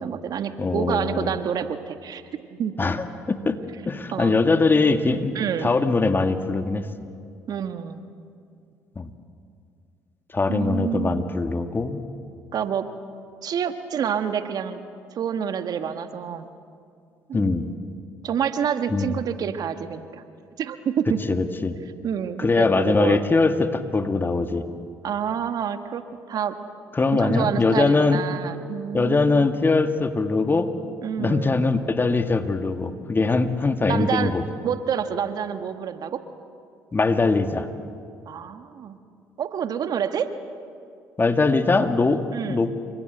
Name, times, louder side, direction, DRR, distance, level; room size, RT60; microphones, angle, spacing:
voice 1, 0.0-2.2 2.5-2.7 4.1-4.4 5.3-5.7 7.5-8.0 10.5-11.2 12.5-12.9 13.4-14.8 15.1-16.5 17.3-17.5 18.2-20.2 20.6-21.2 22.0-23.2 25.0-26.0 26.3-26.5 27.1-29.5 31.0-31.5 33.9-34.3 34.6-36.2 38.3-39.0 39.4-40.3 42.3-42.6, right 8 dB, 55° right, 9 dB, 1.6 m, -28 dB
voice 2, 0.6-1.3 2.8-3.6 3.9-6.9 9.0-9.1 10.3-12.0 17.3-17.7 18.9-19.1 21.3-21.8 22.4-24.7 26.9-28.2 28.9-30.7 31.2-34.4 36.9-37.7 41.2-42.7, left 3 dB, 25° left, 8 dB, 2.1 m, -22 dB
28.5 x 24.5 x 8.2 m, 2.3 s
hypercardioid pair, 55°, 8 cm